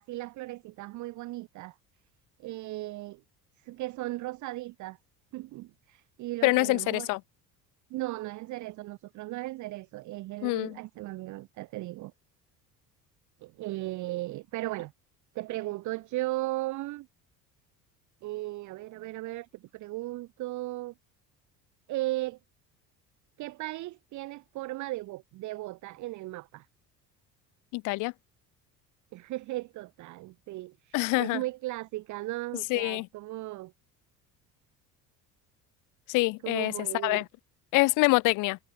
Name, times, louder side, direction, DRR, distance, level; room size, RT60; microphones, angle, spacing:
voice 1, 0.0-1.7 2.4-3.2 3.6-5.0 5.3-7.1 7.9-12.1 13.4-14.9 15.3-17.1 18.2-20.9 21.9-22.4 23.4-26.7 29.1-33.7 36.4-37.2, right 18 dB, 40° right, 0.7 m, -36 dB
voice 2, 6.4-7.2 10.4-10.8 27.7-28.1 30.9-31.4 32.7-33.1 36.1-36.7 37.0-37.2 37.7-38.6, left 23 dB, 40° left, 0.5 m, -25 dB
figure-of-eight pair, 55°, 48 cm